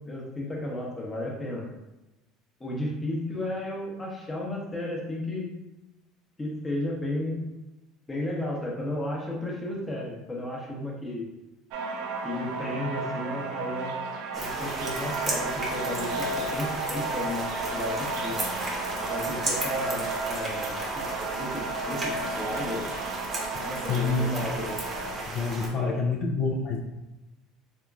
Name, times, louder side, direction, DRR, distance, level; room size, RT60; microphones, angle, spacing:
voice 1, 0.0-1.7 2.6-5.5 6.4-7.4 8.1-11.3 12.2-13.9 14.3-17.4 17.7-18.4 19.1-21.0 21.4-22.9 23.6-24.8 25.8-25.9, left 1 dB, 15° left, -3 dB, 0.9 m, -33 dB
sound 1, 11.7-25.3, right 3 dB, 75° right, 0.4 m, -33 dB
sound 2, 14.3-25.7, right 2 dB, 25° right, 0.8 m, -34 dB
voice 2, 23.9-24.3 25.3-26.8, left 4 dB, 60° left, -1 dB, 0.4 m, -27 dB
3.5 x 2.8 x 2.3 m, 1.0 s
supercardioid pair, 110°, 0 cm